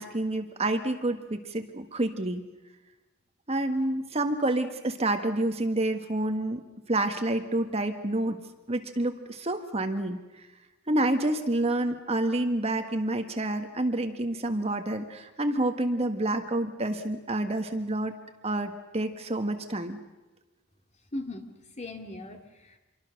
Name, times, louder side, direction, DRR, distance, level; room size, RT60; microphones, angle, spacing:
voice 1, 0.0-2.4 3.5-6.6 6.9-8.4 8.7-10.2 10.9-18.2 18.4-20.0, right 1 dB, 30° right, 6 dB, 1.6 m, -28 dB
voice 2, 21.1-22.8, left 2 dB, 35° left, 5 dB, 2.4 m, -39 dB
27.0 x 23.0 x 6.6 m, 1.1 s
head